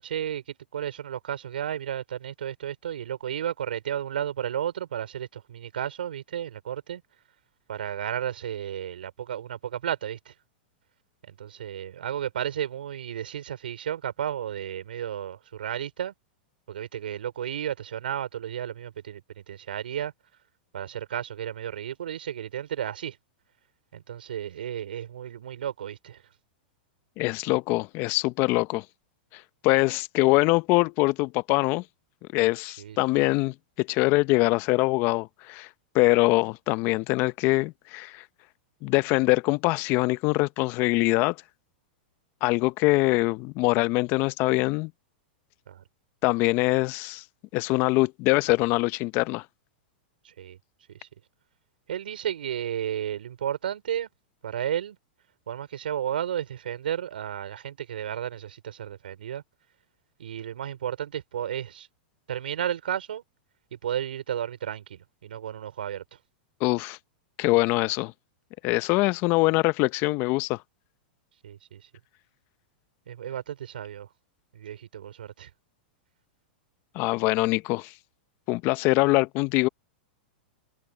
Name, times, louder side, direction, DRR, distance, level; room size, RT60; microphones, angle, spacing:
voice 1, 0.0-7.0 7.7-10.3 11.2-16.1 16.7-20.1 20.7-23.2 23.9-26.2 32.8-33.0 45.7-45.8 50.2-50.6 50.9-51.1 51.9-54.1 54.4-55.0 55.5-59.4 60.2-61.9 62.3-63.2 63.7-66.0 71.4-71.8 73.1-74.1 74.5-75.5, right 10 dB, 80° right, 4.7 m, -33 dB
voice 2, 27.2-28.8 29.3-31.8 32.3-35.7 35.9-38.2 38.8-41.4 42.4-44.9 46.2-47.2 47.5-49.4 66.6-67.0 67.4-68.1 68.6-70.6 76.9-77.9 78.5-79.7, left 22 dB, 45° left, 0.8 m, -23 dB
hypercardioid pair, 115°, 5 cm